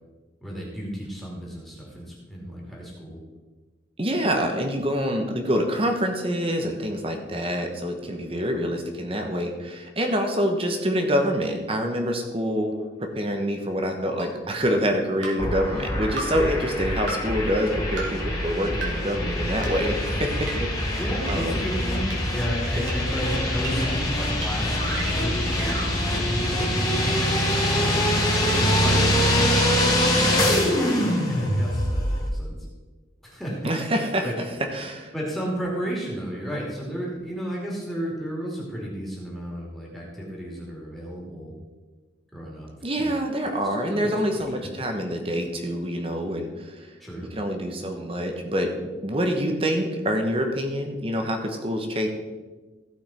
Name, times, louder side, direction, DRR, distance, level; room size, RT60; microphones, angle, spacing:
voice 1, 0.4-3.2 20.9-32.6 33.2-33.7 34.2-34.3 35.1-41.6 42.3-42.7 43.0-43.2 43.9-44.7 47.0-47.3, equal, ahead, -5 dB, 2.7 m, -33 dB
voice 2, 4.0-21.0 21.3-21.6 33.6-34.3 34.7-35.1 42.8-46.9 47.3-48.7 49.0-52.1, equal, 30° right, 4 dB, 1.2 m, -26 dB
sound 1, 14.2-14.3 15.2-15.3 16.2-16.3 17.1-17.2 18.0-18.1 18.8-18.9 19.6-19.7 20.5-20.6 21.3-21.4 22.1-22.2 22.9-23.0 23.6-23.7 24.4-24.5 24.7-25.9, right 2 dB, 80° right, 2.7 m, -33 dB
sound 2, 15.4-32.3, left 1 dB, 20° left, 2.3 m, -24 dB
15.5 x 5.8 x 4.4 m, 1.3 s
head